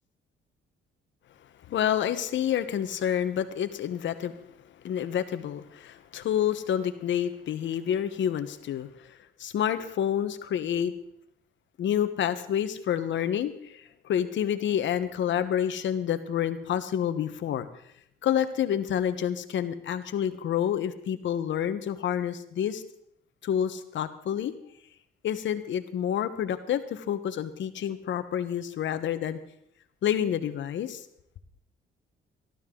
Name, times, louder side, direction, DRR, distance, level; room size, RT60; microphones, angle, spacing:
voice 1, 1.7-4.6 4.8-10.9 11.8-17.7 18.2-22.8 23.4-24.5 25.2-29.4 30.0-31.0, left 9 dB, 70° left, 11 dB, 1.2 m, -28 dB
18.5 x 13.0 x 3.8 m, 0.73 s
cardioid pair, 90°, 20 cm